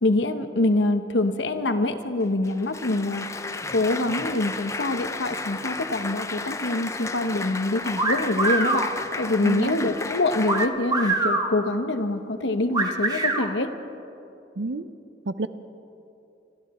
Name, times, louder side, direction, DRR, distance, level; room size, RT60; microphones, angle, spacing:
voice 1, 0.0-3.3 3.7-8.8 9.2-13.7, left 2 dB, 75° left, 9 dB, 0.9 m, -25 dB
Applause, 2.2-10.7, left 3 dB, 15° left, 0.5 m, -33 dB
sound 1, 8.0-8.9 10.5-11.5 12.7-13.5, right 2 dB, 20° right, 1.1 m, -23 dB
voice 2, 9.4-9.8 14.6-14.9 15.3-15.5, right 3 dB, 70° right, 13 dB, 0.6 m, -29 dB
26.5 x 12.5 x 4.2 m, 2.7 s
head